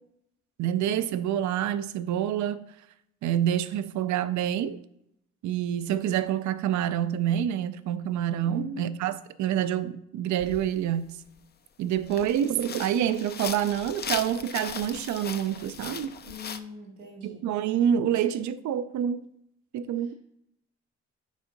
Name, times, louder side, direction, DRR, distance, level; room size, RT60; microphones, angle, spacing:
voice 1, 0.6-2.6 3.2-4.8 5.4-11.2 11.8-16.1 17.2-19.2 19.7-20.1, right 10 dB, 75° right, 0.5 m, -27 dB
voice 2, 8.5-9.0 16.3-17.4, left 2 dB, 90° right, 2.1 m, -41 dB
sound 1, 10.4-10.7 11.3-11.4 11.9-16.6, left 7 dB, 35° left, 0.5 m, -38 dB
5.3 x 3.6 x 5.1 m
cardioid pair, 75°, 30 cm